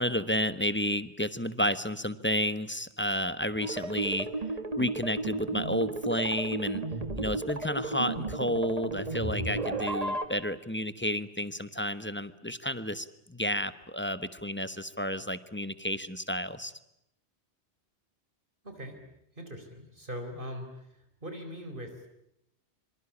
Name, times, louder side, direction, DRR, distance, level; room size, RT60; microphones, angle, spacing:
voice 1, 0.0-4.3 4.8-6.8 7.2-16.7, equal, 10° left, 13 dB, 1.1 m, -31 dB
sound 1, 3.6-10.3, right 2 dB, 35° right, 2.2 m, -33 dB
voice 2, 18.6-19.0 19.3-20.9 21.2-22.0, equal, 50° right, 6 dB, 4.5 m, -40 dB
26.5 x 25.0 x 8.5 m, 0.80 s
omnidirectional pair, 1.1 m